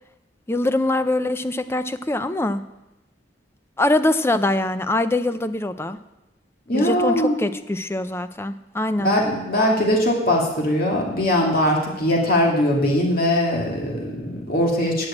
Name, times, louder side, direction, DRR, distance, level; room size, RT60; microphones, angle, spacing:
voice 1, 0.5-2.6 3.8-6.0 6.7-9.1, left 2 dB, 15° left, 11 dB, 0.4 m, -23 dB
voice 2, 6.7-7.4 9.0-15.1, left 1 dB, 50° left, -2 dB, 2.6 m, -21 dB
9.7 x 6.4 x 8.6 m, 0.94 s
head